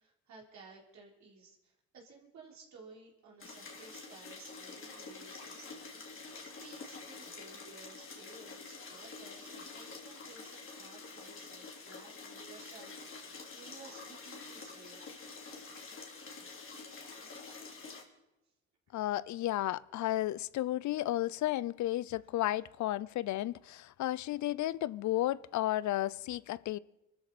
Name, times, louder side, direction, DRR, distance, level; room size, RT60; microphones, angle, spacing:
voice 1, 0.0-13.0 13.2-15.1 18.9-19.1, right 4 dB, 65° right, 3.8 m, -56 dB
sound 1, 3.4-18.0, left 4 dB, 45° left, 3.1 m, -48 dB
voice 2, 18.9-26.8, left 14 dB, 70° left, 0.5 m, -33 dB
24.0 x 13.5 x 4.2 m
cardioid pair, 90°, 30 cm